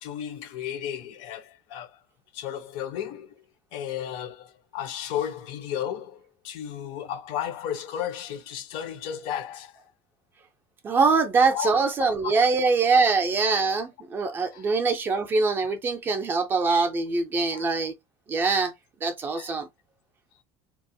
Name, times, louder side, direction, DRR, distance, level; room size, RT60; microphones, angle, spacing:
voice 1, 0.0-2.0 2.3-3.4 3.7-9.9 11.5-11.7 12.2-12.4 12.9-13.0 14.5-14.7 17.5-17.7 19.3-19.6, left 10 dB, 60° left, 0.5 m, -34 dB
voice 2, 10.8-17.9 18.3-18.7 19.0-19.7, right 4 dB, 20° right, 0.5 m, -23 dB
2.9 x 2.0 x 2.6 m
cardioid pair, 180°, 10 cm